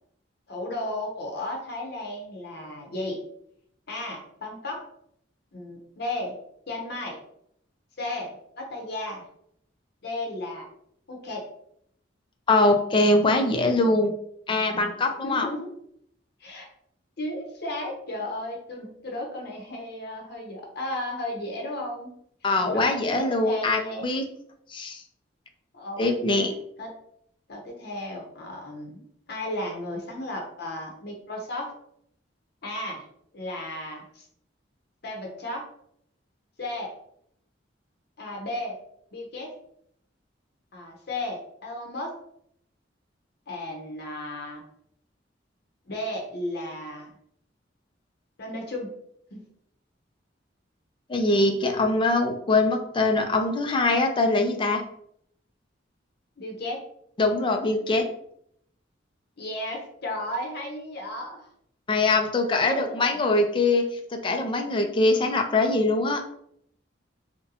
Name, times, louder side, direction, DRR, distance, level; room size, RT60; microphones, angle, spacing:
voice 1, 0.5-3.2 3.9-4.8 5.5-6.4 6.7-7.2 8.0-9.2 10.0-10.7 11.1-11.5 15.2-15.7 16.4-16.7 17.2-22.1 22.7-24.1 25.7-26.4 26.8-26.9 27.5-31.7 32.6-33.0 33.3-34.3 35.0-35.7 36.6-36.9 38.2-38.8 39.1-39.5 40.7-42.1 43.5-44.6 45.9-47.1 48.4-48.9 49.3-49.4 56.4-56.8 59.4-61.5 62.6-63.2, left 1 dB, 60° left, 0 dB, 0.8 m, -34 dB
voice 2, 12.5-14.1 14.5-15.5 22.4-24.2 24.7-25.0 26.0-26.6 51.1-54.8 57.2-58.0 61.9-63.8 64.2-66.2, left 2 dB, 25° left, 4 dB, 0.4 m, -23 dB
3.8 x 2.2 x 2.8 m, 0.71 s
head